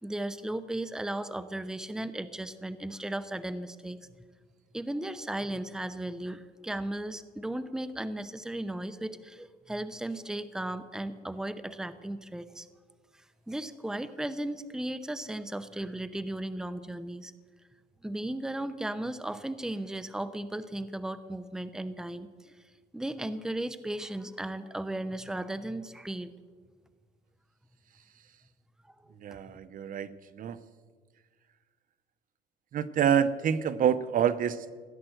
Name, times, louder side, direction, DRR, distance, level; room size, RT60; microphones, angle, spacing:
voice 1, 0.0-4.0 4.7-12.7 13.1-17.3 18.0-22.5 22.9-26.3, right 1 dB, 5° right, 12 dB, 0.8 m, -36 dB
voice 2, 29.2-30.6 32.7-34.7, right 8 dB, 55° right, 14 dB, 0.8 m, -27 dB
16.0 x 10.0 x 7.9 m, 1.5 s
cardioid pair, 110°, 17 cm